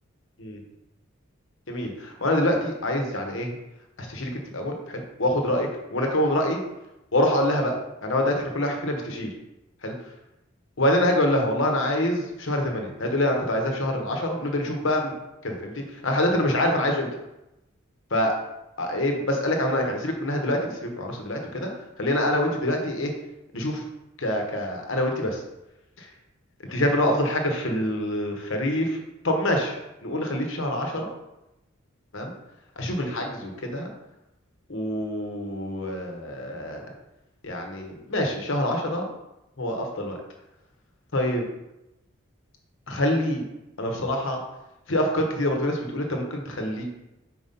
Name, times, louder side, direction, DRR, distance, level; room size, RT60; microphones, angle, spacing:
voice 1, 1.7-3.5 4.0-6.6 7.1-7.7 8.0-9.3 9.8-9.9 10.8-15.1 15.4-17.1 18.1-18.3 18.8-21.7 22.0-23.1 23.5-23.8 24.2-25.4 26.7-29.0 29.2-29.7 30.0-31.1 32.1-32.3 32.8-33.9 34.7-36.9 37.4-39.1 39.6-40.2 41.1-41.4 42.9-43.4 43.8-44.4 44.9-46.8, left 1 dB, 60° left, 2 dB, 1.1 m, -25 dB
4.7 x 4.1 x 5.3 m, 0.93 s
head